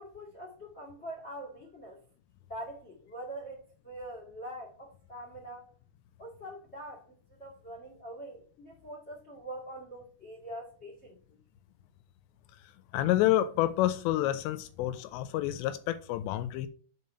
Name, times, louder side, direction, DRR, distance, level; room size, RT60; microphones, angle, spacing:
voice 1, 0.0-2.0 2.5-5.7 6.2-7.1 7.4-11.4, right 1 dB, 35° left, 1.0 m, -44 dB
voice 2, 12.9-16.7, left 14 dB, 85° left, 2.7 m, -28 dB
5.8 x 5.6 x 5.5 m
omnidirectional pair, 5.2 m